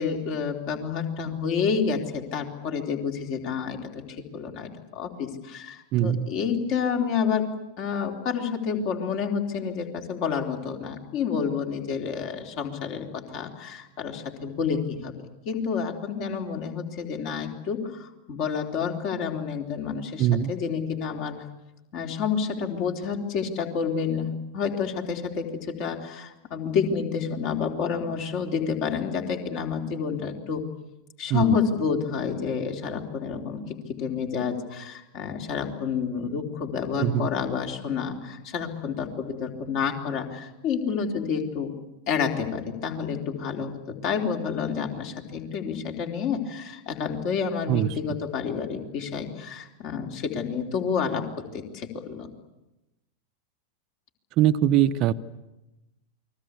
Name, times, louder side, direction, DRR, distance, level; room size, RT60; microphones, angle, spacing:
voice 1, 0.0-3.8 4.3-7.5 7.8-15.1 15.5-21.4 21.9-30.6 31.2-33.6 33.9-41.7 42.1-52.3, left 6 dB, 45° left, 3 dB, 3.7 m, -29 dB
voice 2, 5.9-6.3 20.2-20.5 31.3-31.6 37.0-37.3 47.7-47.9 54.4-55.1, right 11 dB, 40° right, 13 dB, 0.9 m, -22 dB
29.0 x 21.5 x 8.4 m, 0.97 s
figure-of-eight pair, 90°, 0 cm